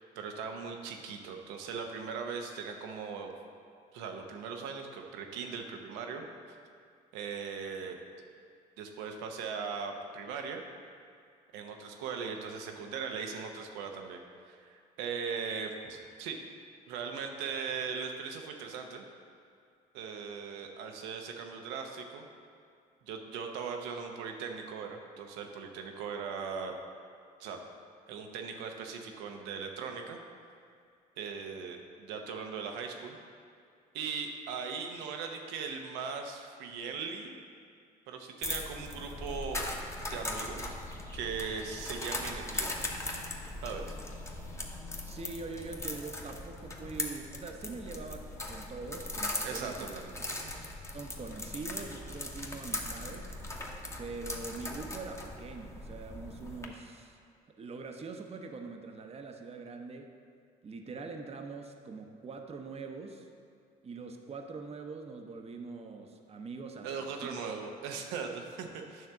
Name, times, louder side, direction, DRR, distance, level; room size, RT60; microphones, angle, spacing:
voice 1, 0.0-3.3 3.9-6.6 7.1-8.0 8.8-10.6 11.5-16.4 16.9-19.0 19.9-22.3 23.0-26.7 27.4-27.6 28.1-30.2 31.2-33.2 33.9-37.4 38.1-39.6 40.1-40.7 41.1-42.7 43.6-44.0 49.4-50.5 66.8-69.1, right 5 dB, 90° right, 3 dB, 0.8 m, -39 dB
sound 1, 38.4-56.6, left 1 dB, 15° left, 1.0 m, -39 dB
voice 2, 45.1-49.9 50.9-53.3 54.0-57.2 57.6-60.1 60.6-63.3 63.8-67.4, right 4 dB, 35° right, 4 dB, 0.7 m, -43 dB
9.3 x 3.4 x 6.0 m, 2.3 s
supercardioid pair, 70°, 18 cm